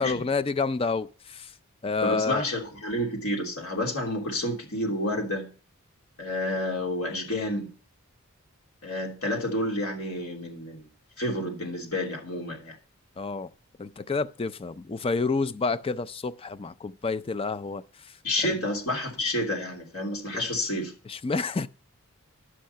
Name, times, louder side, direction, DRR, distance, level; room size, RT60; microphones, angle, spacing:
voice 1, 0.0-1.5 1.8-2.4 13.2-13.5 13.8-17.8 18.4-18.5 21.1-21.7, left 4 dB, 25° left, 0.4 m, -29 dB
voice 2, 2.0-5.5 6.2-7.7 8.8-10.9 11.2-12.7 18.2-20.9, left 1 dB, 80° left, 3.2 m, -30 dB
11.0 x 6.4 x 5.7 m
head